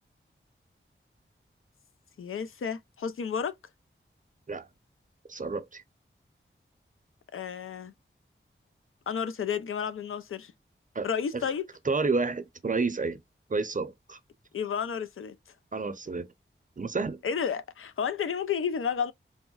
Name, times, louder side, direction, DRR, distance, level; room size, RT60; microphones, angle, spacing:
voice 1, 2.2-3.6 7.3-7.9 9.1-10.5 11.0-11.7 14.5-15.4 17.2-19.1, left 7 dB, 80° left, 0.4 m, -31 dB
voice 2, 5.3-5.8 10.9-11.1 11.3-11.5 11.8-13.2 13.5-14.2 15.7-16.3 16.8-17.2, right 4 dB, 40° right, 0.6 m, -30 dB
3.6 x 2.1 x 2.3 m
cardioid pair, 45°, 21 cm